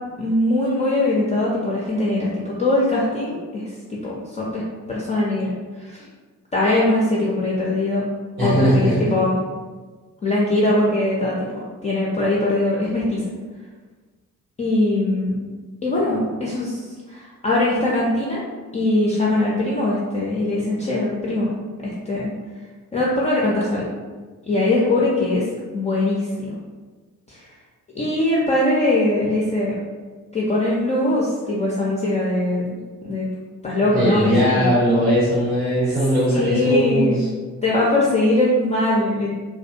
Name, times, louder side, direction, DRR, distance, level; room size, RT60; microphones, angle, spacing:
voice 1, 0.2-3.6 3.9-4.6 4.9-5.5 5.8-6.1 6.5-8.1 8.4-9.4 10.2-11.6 11.8-13.2 14.6-15.3 15.8-18.4 18.7-22.3 22.9-23.9 24.5-25.4 25.7-26.5 27.3-27.4 27.9-29.7 30.3-33.3 33.6-34.8 36.3-37.2 37.6-39.3, left 2 dB, 20° left, -6 dB, 0.3 m, -21 dB
voice 2, 8.4-9.1 33.9-37.3, equal, 85° right, -9 dB, 1.0 m, -19 dB
2.3 x 2.2 x 2.6 m, 1.4 s
figure-of-eight pair, 45°, 43 cm